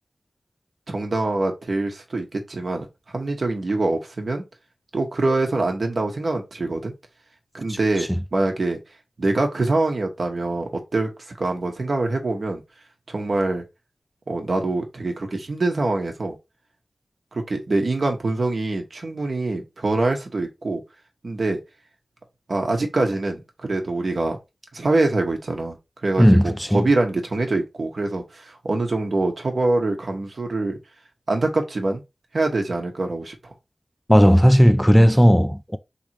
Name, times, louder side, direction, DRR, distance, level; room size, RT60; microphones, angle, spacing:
voice 1, 0.9-2.9 3.1-4.4 4.9-6.9 7.5-8.8 9.2-11.1 11.4-12.6 13.1-13.6 14.3-16.4 17.3-20.8 21.2-21.6 22.5-24.4 24.7-25.8 26.0-30.8 31.3-32.0 32.3-33.3, right 2 dB, 70° right, 1.2 m, -24 dB
voice 2, 26.2-26.8 34.1-35.8, equal, ahead, 0.4 m, -15 dB
3.5 x 2.9 x 4.5 m
cardioid pair, 45°, 0 cm